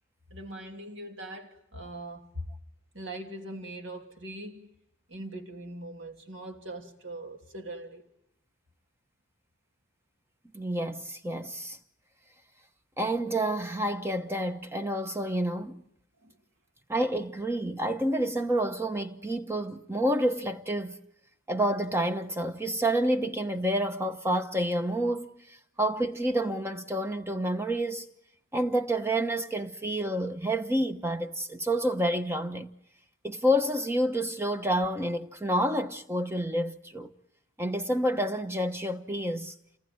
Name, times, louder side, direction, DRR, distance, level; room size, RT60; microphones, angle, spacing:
voice 1, 0.3-2.5 2.9-4.7 5.1-8.0 16.2-16.3, right 1 dB, 60° right, 3.0 m, -41 dB
voice 2, 10.5-11.8 13.0-15.8 16.9-21.0 21.5-25.4 25.8-28.1 28.5-32.7 33.2-37.1 37.6-39.5, right 1 dB, 10° right, 1.0 m, -29 dB
29.0 x 20.0 x 9.6 m
head